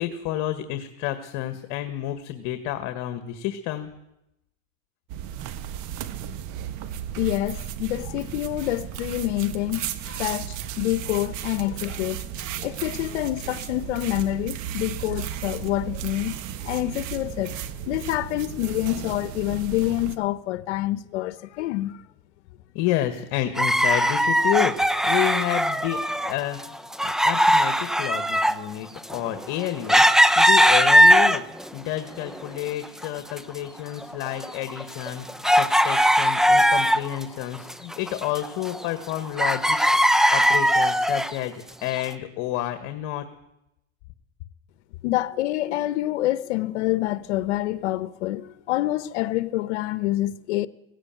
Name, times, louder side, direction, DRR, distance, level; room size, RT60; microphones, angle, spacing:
voice 1, 0.0-3.9 22.7-24.7 25.0-26.8 27.0-30.0 30.3-31.4 31.7-39.8 40.3-43.2, left 13 dB, 65° left, 1.8 m, -30 dB
sound 1, 5.1-20.2, right 10 dB, 60° right, 1.6 m, -34 dB
voice 2, 7.2-16.3 16.6-17.6 17.9-21.9 45.0-50.7, left 16 dB, 90° left, 1.0 m, -27 dB
sound 2, 23.6-26.3 26.6-31.7 32.2-33.1 33.3-33.4 34.0-37.2 37.5-39.1 39.4-41.4 42.0-42.1, equal, ahead, 0.7 m, -19 dB
17.5 x 16.5 x 9.2 m
supercardioid pair, 125°, 34 cm